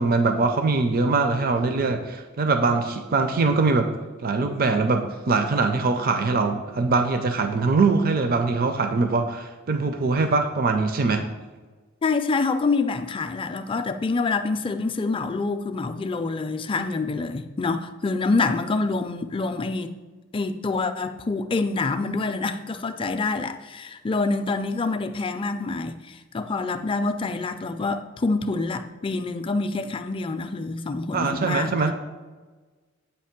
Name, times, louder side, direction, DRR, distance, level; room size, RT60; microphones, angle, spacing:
voice 1, 0.0-3.9 4.2-11.3 31.1-32.0, right 3 dB, 45° right, 0.5 m, -22 dB
voice 2, 12.0-19.9 20.3-31.7, left 3 dB, 25° left, 0.4 m, -26 dB
8.3 x 3.0 x 5.8 m
head